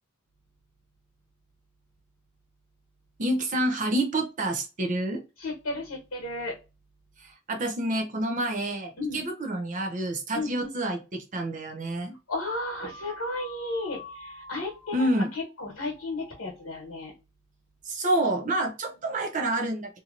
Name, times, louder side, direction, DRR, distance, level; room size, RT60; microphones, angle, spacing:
voice 1, 3.2-5.2 7.2-12.2 14.9-15.3 17.8-20.0, right 1 dB, 40° right, 3 dB, 0.6 m, -28 dB
voice 2, 5.4-6.6 9.0-9.2 10.3-10.7 12.3-17.1, left 2 dB, 70° left, -1 dB, 1.2 m, -34 dB
sound 1, 12.4-17.0, left 2 dB, 25° left, 1.0 m, -48 dB
2.9 x 2.7 x 2.4 m, 0.28 s
head